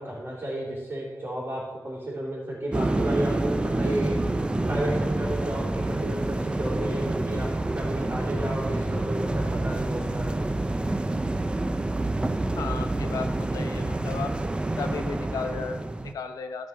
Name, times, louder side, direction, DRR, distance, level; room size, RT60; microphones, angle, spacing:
voice 1, 0.0-4.2 4.6-10.4, right 1 dB, 40° right, -10 dB, 3.4 m, -32 dB
sound 1, 2.7-16.1, right 2 dB, 15° right, 0.5 m, -27 dB
voice 2, 12.5-14.3 14.8-16.7, left 5 dB, 90° left, 7 dB, 0.8 m, -35 dB
14.0 x 5.2 x 4.6 m, 1.2 s
wide cardioid pair, 100°, 6 cm